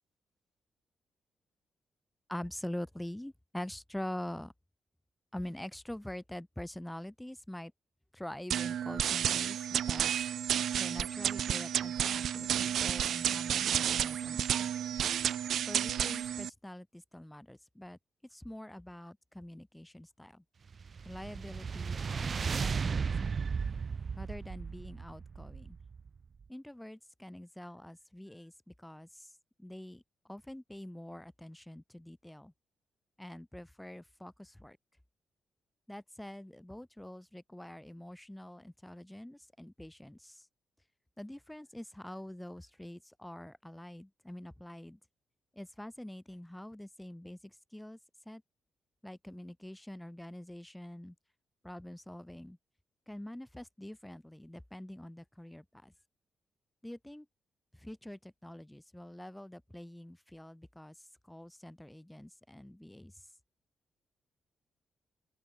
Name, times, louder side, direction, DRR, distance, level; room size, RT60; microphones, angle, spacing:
voice 1, 2.3-4.5 5.3-7.7 8.1-10.2 10.8-14.7 15.7-18.0 18.3-20.4 21.0-23.3 24.2-25.8 26.5-29.3 29.6-30.0 30.3-32.5 33.2-34.8 35.9-40.5 41.2-45.0 45.5-48.0 48.2-48.4 49.0-51.1 51.6-52.6 53.1-55.9 56.8-57.3 57.8-60.9 61.3-63.1, left 1 dB, 5° left, 2.9 m, -45 dB
sound 1, 8.5-16.5, right 9 dB, 75° right, 2.0 m, -31 dB
sound 2, 20.7-26.2, right 5 dB, 45° right, 2.7 m, -35 dB
open air
cardioid pair, 90°, 0 cm